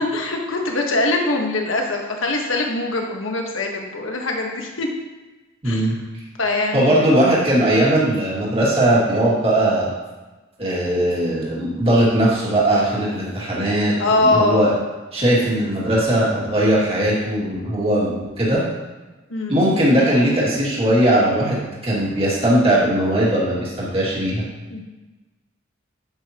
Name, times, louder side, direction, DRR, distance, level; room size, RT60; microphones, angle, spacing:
voice 1, 0.0-4.9 5.6-5.9 6.4-7.1 14.0-14.8 19.3-19.7 24.7-24.8, left 2 dB, 70° left, 1 dB, 1.5 m, -22 dB
voice 2, 5.6-5.9 6.7-9.9 10.6-14.7 15.1-18.6 19.5-24.4, right 1 dB, 30° right, -7 dB, 2.4 m, -19 dB
10.5 x 8.1 x 3.0 m, 1.2 s
head